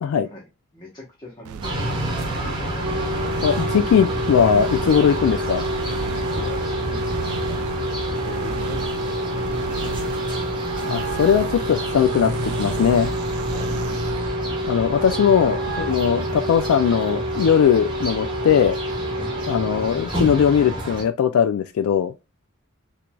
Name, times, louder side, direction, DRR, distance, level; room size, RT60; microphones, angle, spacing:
voice 1, 0.7-2.6 6.0-7.9 8.2-10.2 13.3-13.7 19.1-19.3, equal, 20° left, 1.0 m, -42 dB
sound 1, 1.4-14.4, right 7 dB, 85° right, 0.3 m, -35 dB
sound 2, 1.6-21.0, equal, 20° right, 1.1 m, -29 dB
Wind instrument woodwind instrument, 2.6-20.0, right 1 dB, 65° right, 0.7 m, -29 dB
voice 2, 3.4-5.6 10.9-13.1 14.7-18.7 19.5-22.1, left 7 dB, 90° left, 0.3 m, -19 dB
4.4 x 2.6 x 2.2 m
head